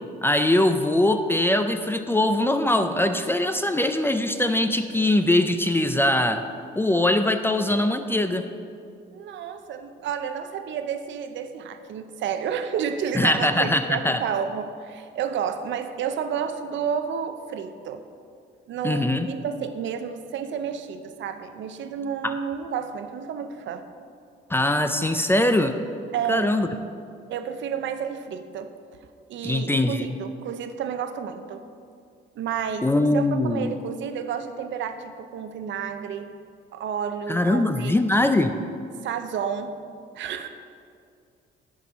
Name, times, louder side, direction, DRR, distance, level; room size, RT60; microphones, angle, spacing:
voice 1, 0.2-6.4 6.8-8.4 13.2-14.2 18.8-19.3 22.2-22.4 24.5-25.8 26.3-26.7 29.4-30.1 32.8-33.7 37.3-38.5, left 1 dB, 10° left, 8 dB, 0.4 m, -22 dB
voice 2, 9.1-18.0 18.7-23.8 26.1-26.5 27.3-28.7 29.3-31.6 32.4-33.2 33.5-36.3 36.7-38.3 39.0-39.8 40.1-40.5, right 7 dB, 70° right, 8 dB, 0.6 m, -31 dB
10.5 x 4.3 x 5.1 m, 2.4 s
cardioid pair, 90°, 20 cm